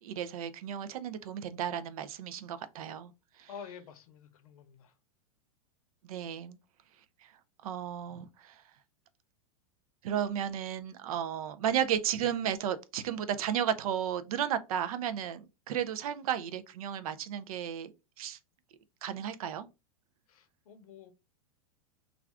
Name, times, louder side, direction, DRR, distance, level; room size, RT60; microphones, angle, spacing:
voice 1, 0.0-3.1 3.4-3.5 6.0-6.6 7.2-7.3 7.6-8.6 10.0-18.4 19.0-19.7, right 9 dB, 75° right, 0.4 m, -34 dB
voice 2, 3.5-4.9 20.3-21.1, left 7 dB, 80° left, 0.6 m, -49 dB
2.4 x 2.3 x 3.3 m
hypercardioid pair, 125°, 18 cm